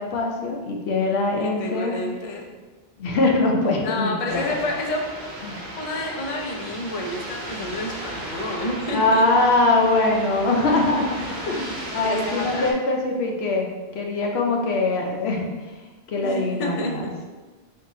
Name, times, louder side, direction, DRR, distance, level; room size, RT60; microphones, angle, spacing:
voice 1, 0.0-2.0 3.0-4.5 5.4-5.6 8.9-13.7 13.9-15.5 16.1-17.0, left 2 dB, 85° left, 1 dB, 0.9 m, -22 dB
voice 2, 1.4-2.4 3.8-5.3 5.8-9.3 12.0-12.7 16.2-16.9, left 1 dB, 45° left, 1 dB, 0.5 m, -29 dB
sound 1, 4.3-12.7, right 1 dB, 50° right, 0.7 m, -35 dB
3.6 x 2.4 x 4.1 m, 1.3 s
omnidirectional pair, 1.0 m